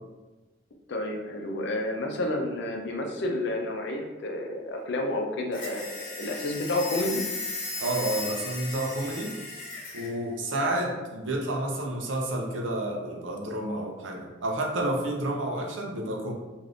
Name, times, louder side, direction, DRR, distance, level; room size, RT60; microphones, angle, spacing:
voice 1, 0.9-7.2, left 1 dB, 65° left, 2 dB, 0.5 m, -30 dB
sound 1, 5.5-10.1, left 3 dB, 45° left, 0.9 m, -36 dB
voice 2, 7.8-9.4 9.9-16.3, right 1 dB, 75° right, 0 dB, 0.6 m, -30 dB
2.6 x 2.5 x 3.3 m, 1.2 s
head